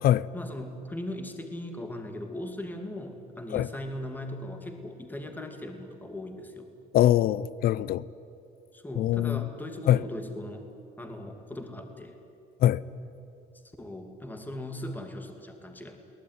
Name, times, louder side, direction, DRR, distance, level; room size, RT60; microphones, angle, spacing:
voice 1, 0.3-6.7 8.7-10.7 11.0-12.2 13.8-16.0, left 1 dB, 10° left, 2.5 m, -39 dB
voice 2, 6.9-8.0 9.0-9.4 9.9-10.0 12.6-12.8, left 12 dB, 65° left, 0.6 m, -22 dB
22.5 x 18.5 x 9.4 m
cardioid pair, 110°, 17 cm